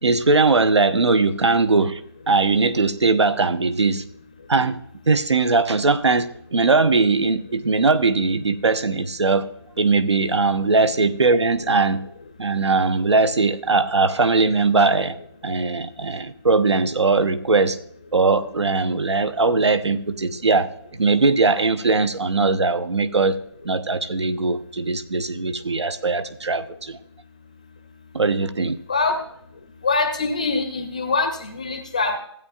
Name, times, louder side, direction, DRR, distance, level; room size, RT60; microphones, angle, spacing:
voice 1, 0.0-2.0 2.3-4.0 4.5-4.8 5.1-9.5 9.8-12.0 12.4-15.2 15.4-17.8 18.1-20.7 21.0-23.3 23.6-27.0 28.1-28.8, right 3 dB, 75° right, 11 dB, 0.9 m, -20 dB
voice 2, 29.8-32.2, left 3 dB, 15° left, 6 dB, 0.6 m, -23 dB
16.0 x 8.6 x 2.4 m, 0.69 s
figure-of-eight pair, 170°, 14 cm